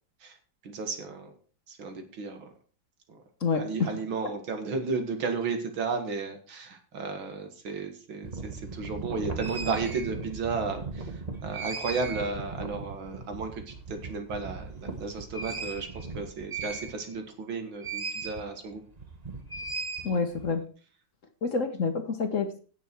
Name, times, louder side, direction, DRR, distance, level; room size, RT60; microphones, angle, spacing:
voice 1, 0.6-1.3 1.7-2.5 3.1-3.2 3.6-18.8, right 4 dB, 85° right, 6 dB, 2.7 m, -34 dB
voice 2, 3.4-3.9 20.0-20.6 21.4-22.6, left 4 dB, 45° left, 7 dB, 1.4 m, -28 dB
sound 1, 8.2-17.3 17.8-18.4 18.7-20.5, right 4 dB, 25° right, 1.1 m, -37 dB
16.0 x 7.0 x 4.6 m, 0.40 s
omnidirectional pair, 2.1 m